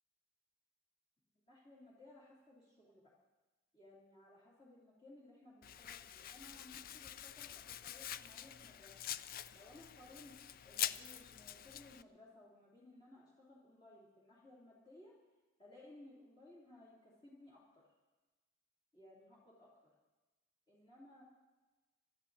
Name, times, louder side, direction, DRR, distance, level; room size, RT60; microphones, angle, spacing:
voice 1, 1.5-3.0 3.7-8.9 9.5-15.1 15.6-17.8 18.9-19.9 20.7-21.2, left 1 dB, 20° left, -6 dB, 2.8 m, -60 dB
Domestic sounds home sounds, 5.6-12.0, left 11 dB, 40° left, 0.4 m, -45 dB
25.5 x 12.0 x 4.0 m, 1.2 s
head